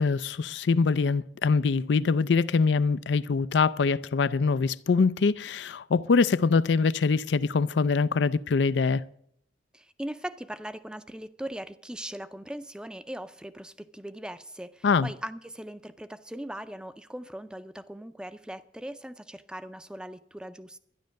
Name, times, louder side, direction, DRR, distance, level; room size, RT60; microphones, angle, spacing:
voice 1, 0.0-9.0 14.8-15.1, left 4 dB, 80° left, 0.4 m, -24 dB
voice 2, 9.7-20.8, right 1 dB, 5° right, 0.5 m, -40 dB
12.0 x 10.5 x 6.4 m
head